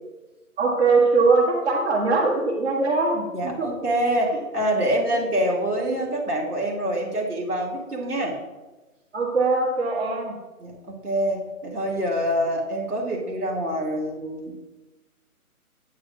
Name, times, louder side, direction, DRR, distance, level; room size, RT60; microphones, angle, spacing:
voice 1, 0.6-3.7 4.1-4.2 9.1-10.4, right 3 dB, 45° right, -1 dB, 1.3 m, -21 dB
voice 2, 3.3-8.4 10.6-14.6, equal, 90° right, -2 dB, 2.4 m, -26 dB
8.7 x 8.6 x 2.6 m, 1.1 s
figure-of-eight pair, 155°, 44 cm